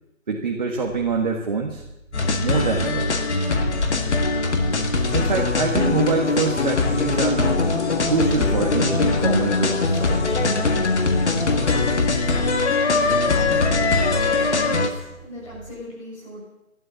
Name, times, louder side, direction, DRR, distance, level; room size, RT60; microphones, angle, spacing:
voice 1, 0.3-1.8 2.4-3.1 5.1-7.7 8.0-10.6, right 4 dB, 35° right, 0 dB, 1.6 m, -25 dB
sound 1, 0.7-15.7, right 2 dB, 20° right, 1.4 m, -37 dB
sound 2, 2.1-14.9, left 3 dB, 55° left, 1.9 m, -21 dB
voice 2, 14.6-16.5, equal, 25° left, -4 dB, 6.3 m, -39 dB
13.0 x 12.0 x 7.0 m, 0.90 s
hypercardioid pair, 170°, 41 cm